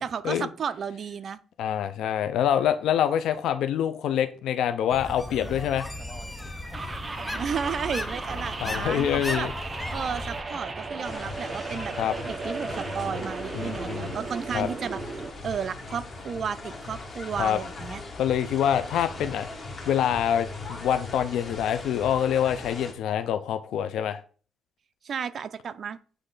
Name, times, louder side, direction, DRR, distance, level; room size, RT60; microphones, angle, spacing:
voice 1, 0.0-1.4 7.3-9.5 9.9-11.9 12.3-18.0 25.0-26.0, right 7 dB, 55° right, 13 dB, 0.5 m, -33 dB
voice 2, 1.6-5.9 8.6-9.5 12.0-12.1 13.5-14.1 14.5-14.7 17.4-17.6 18.2-19.5 19.9-24.2, left 9 dB, 80° left, 11 dB, 0.5 m, -26 dB
sound 1, 4.9-10.4, left 1 dB, 10° left, 0.8 m, -36 dB
sound 2, 6.7-15.3, right 3 dB, 30° right, 0.8 m, -36 dB
sound 3, 11.0-22.9, left 2 dB, 35° left, 2.0 m, -39 dB
8.2 x 3.2 x 3.8 m, 0.39 s
cardioid pair, 90°, 0 cm